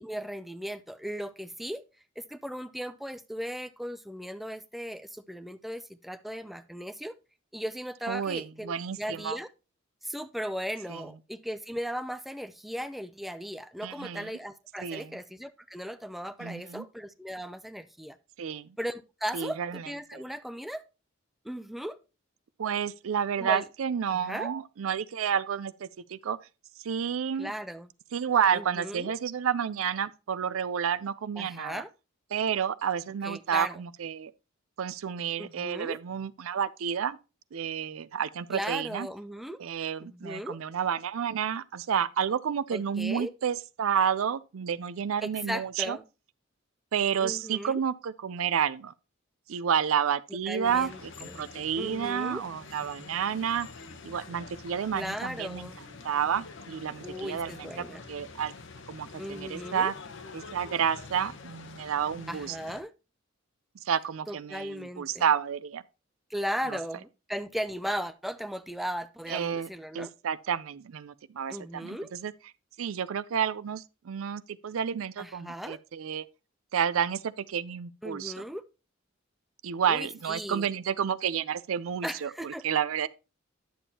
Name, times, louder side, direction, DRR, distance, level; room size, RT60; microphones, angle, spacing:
voice 1, 0.0-1.8 2.2-7.1 7.5-9.5 10.0-18.2 18.8-20.8 21.4-22.0 23.4-23.7 24.1-24.5 27.4-27.9 28.5-29.1 31.4-31.9 33.2-33.8 35.4-36.0 38.5-39.6 40.0-40.6 42.7-43.3 45.2-46.0 47.2-47.8 50.5-51.4 51.8-52.4 54.9-55.8 57.0-58.1 59.2-59.9 62.3-62.9 64.3-65.3 66.3-70.1 71.5-72.1 75.2-75.8 78.0-78.6 79.9-80.7 82.0-82.6, equal, ahead, 0.3 m, -37 dB
voice 2, 8.1-9.4 10.9-11.0 13.8-14.3 14.8-15.2 16.4-16.9 18.4-18.8 19.3-19.8 20.1-20.2 22.6-26.4 26.8-27.5 28.1-31.8 32.3-34.3 34.8-37.2 37.5-39.1 39.6-46.0 46.9-48.9 49.5-53.7 54.0-55.7 56.0-58.5 58.9-59.9 60.3-62.6 63.9-65.8 66.7-66.8 69.3-69.7 69.9-72.3 72.8-76.3 76.7-78.3 79.6-83.1, right 8 dB, 90° right, 0.4 m, -30 dB
sound 1, 50.6-62.8, left 4 dB, 65° left, 0.9 m, -46 dB
10.0 x 7.1 x 2.8 m
head